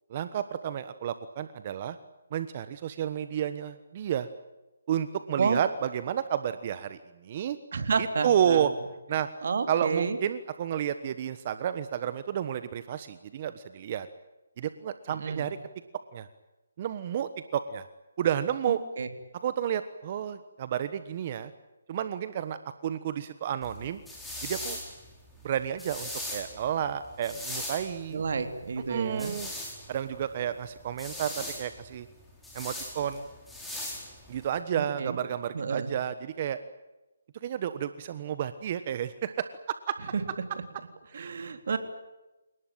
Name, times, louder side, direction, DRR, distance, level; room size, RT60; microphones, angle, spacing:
voice 1, 0.1-2.0 2.3-4.3 4.9-7.6 8.0-8.7 9.1-9.3 9.7-14.1 14.6-15.6 16.1-16.3 16.8-17.9 18.2-18.8 19.4-21.5 21.9-24.0 24.4-24.8 25.4-28.2 28.9-29.5 29.9-32.1 32.5-33.3 34.3-36.6 37.4-39.5 39.9-40.0 41.1-41.3, right 9 dB, 35° right, 12 dB, 1.3 m, -31 dB
voice 2, 7.7-8.7 9.4-10.2 15.1-15.5 18.7-19.1 28.1-29.3 34.8-35.2 35.5-35.9 40.1-40.2 41.1-41.8, right 5 dB, 55° right, 7 dB, 3.6 m, -30 dB
sound 1, 23.6-34.6, left 1 dB, 5° left, 4.6 m, -40 dB
28.0 x 19.0 x 9.1 m, 1.0 s
hypercardioid pair, 160°, 0 cm